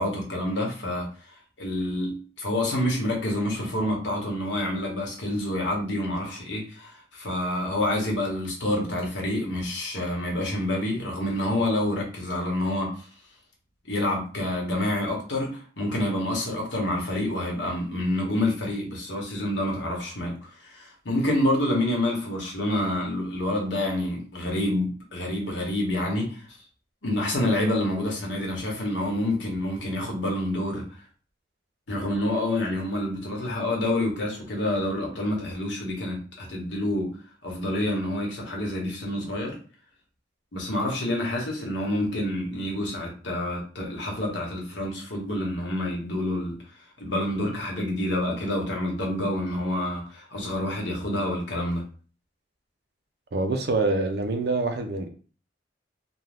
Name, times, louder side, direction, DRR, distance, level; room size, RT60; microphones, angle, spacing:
voice 1, 0.0-13.1 13.8-26.4 27.0-30.8 31.9-37.2 37.4-39.6 40.5-46.6 47.0-51.8, left 1 dB, 75° left, -1 dB, 1.1 m, -28 dB
voice 2, 53.3-55.1, right 3 dB, 60° right, 5 dB, 0.5 m, -25 dB
2.6 x 2.2 x 3.3 m, 0.39 s
head